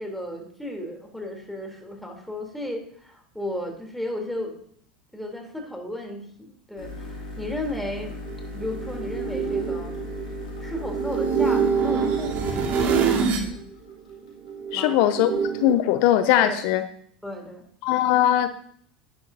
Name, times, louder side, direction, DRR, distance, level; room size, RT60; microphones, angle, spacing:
voice 1, 0.0-4.6 5.1-8.2 8.5-10.0 10.6-13.6 14.7-15.0 16.4-16.6 17.2-17.6, left 1 dB, 5° left, 2 dB, 3.4 m, -34 dB
sound 1, 6.8-15.0, left 2 dB, 85° left, 3.2 m, -37 dB
sound 2, 8.2-13.5 13.9-15.7, right 6 dB, 50° right, 2.1 m, -26 dB
voice 2, 14.7-15.3 15.6-16.8 17.8-18.5, left 12 dB, 60° left, 10 dB, 0.7 m, -20 dB
11.0 x 11.0 x 2.8 m, 0.63 s
hypercardioid pair, 85°, 4 cm